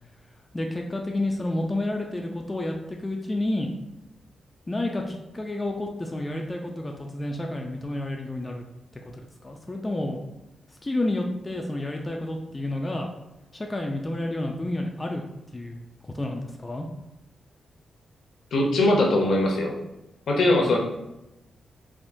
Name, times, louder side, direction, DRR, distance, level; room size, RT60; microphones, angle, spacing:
voice 1, 0.5-3.7 4.7-8.6 9.0-10.2 10.8-13.1 13.5-15.2 15.5-16.9, left 1 dB, 20° left, 1 dB, 0.3 m, -30 dB
voice 2, 18.5-19.7 20.3-20.8, left 2 dB, 70° left, 1 dB, 0.6 m, -21 dB
3.5 x 2.5 x 2.5 m, 0.95 s
wide cardioid pair, 125°, 0 cm